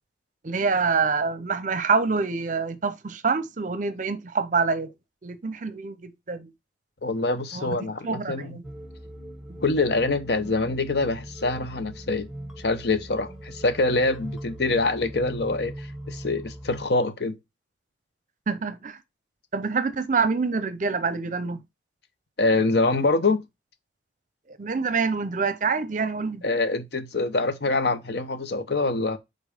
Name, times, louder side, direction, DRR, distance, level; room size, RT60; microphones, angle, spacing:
voice 1, 0.4-4.9 5.2-6.5 7.5-7.7 8.0-8.6 18.5-19.0 19.5-21.6 24.6-26.4, right 4 dB, 45° right, 0.6 m, -26 dB
voice 2, 7.0-8.6 9.6-12.3 12.6-17.4 22.4-23.4 26.4-29.2, left 3 dB, 60° left, 0.8 m, -25 dB
sound 1, 8.6-16.9, right 1 dB, 5° right, 1.3 m, -40 dB
5.3 x 3.9 x 5.0 m
head